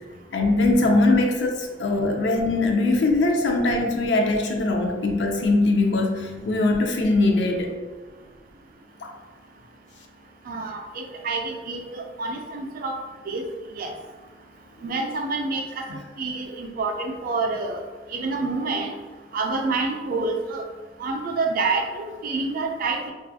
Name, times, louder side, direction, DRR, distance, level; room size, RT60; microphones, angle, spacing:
voice 1, 0.1-7.7 9.0-9.1 15.9-16.0, left 2 dB, 70° left, 2 dB, 0.4 m, -21 dB
voice 2, 10.5-13.0 13.3-13.4 13.8-13.9 14.8-15.9 16.2-17.8 18.1-18.9 19.3-20.6 21.0-23.1, right 3 dB, 50° right, 2 dB, 0.3 m, -27 dB
2.4 x 2.3 x 2.6 m, 1.3 s
head